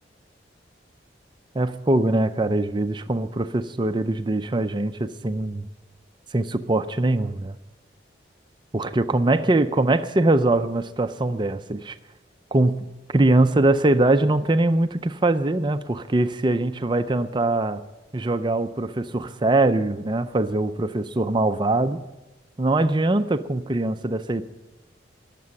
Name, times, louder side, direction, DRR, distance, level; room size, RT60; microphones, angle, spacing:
voice 1, 1.5-5.7 6.3-7.6 8.7-12.0 12.5-12.7 13.1-17.8 18.1-22.0 22.6-24.4, right 2 dB, 25° right, 10 dB, 0.5 m, -22 dB
20.5 x 7.6 x 7.0 m, 1.0 s
head